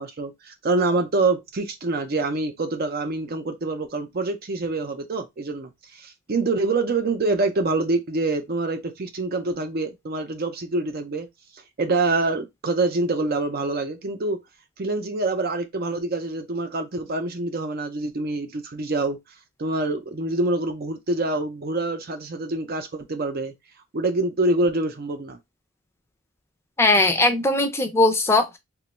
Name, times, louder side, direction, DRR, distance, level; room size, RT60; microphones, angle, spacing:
voice 1, 0.0-11.3 11.8-14.4 14.8-19.2 19.6-23.5 23.9-25.4, right 2 dB, 45° right, 0.5 m, -26 dB
voice 2, 26.8-28.6, left 2 dB, 10° left, 0.5 m, -19 dB
2.9 x 2.2 x 4.1 m
head